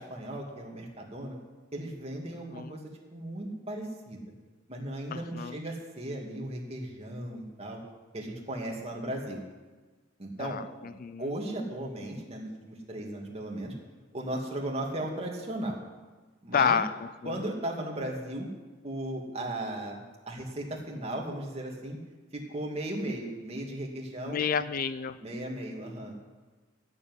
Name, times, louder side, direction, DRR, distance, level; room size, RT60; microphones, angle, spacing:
voice 1, 0.0-1.4 1.7-2.8 3.1-4.2 4.7-7.8 8.1-9.4 10.2-10.6 11.2-13.7 14.1-15.8 16.4-16.8 17.2-18.5 18.8-22.0 22.3-24.4 25.2-26.1, right 1 dB, 35° right, -1 dB, 2.6 m, -36 dB
voice 2, 5.1-5.6 10.4-10.6 11.0-11.2 16.5-16.9 17.2-17.3 24.3-25.2, left 7 dB, 50° left, 14 dB, 0.4 m, -29 dB
13.5 x 7.5 x 9.7 m, 1.3 s
head